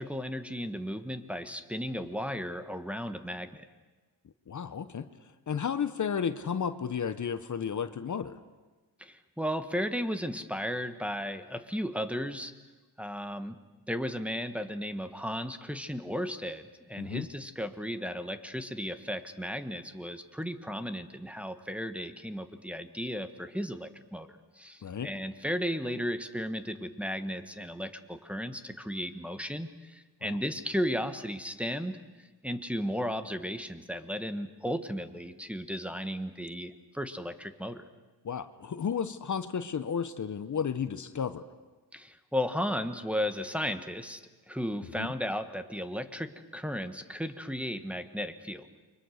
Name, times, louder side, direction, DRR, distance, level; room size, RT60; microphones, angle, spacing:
voice 1, 0.0-3.7 9.0-12.5 13.0-13.6 13.9-24.3 24.6-37.8 41.9-48.7, equal, 5° right, 7 dB, 1.3 m, -35 dB
voice 2, 4.5-5.1 5.5-8.4 17.0-17.3 24.8-25.1 30.2-30.4 38.2-41.4 45.0-45.1, left 7 dB, 45° left, 11 dB, 1.0 m, -33 dB
29.5 x 23.5 x 6.6 m, 1.2 s
cardioid pair, 105°, 40 cm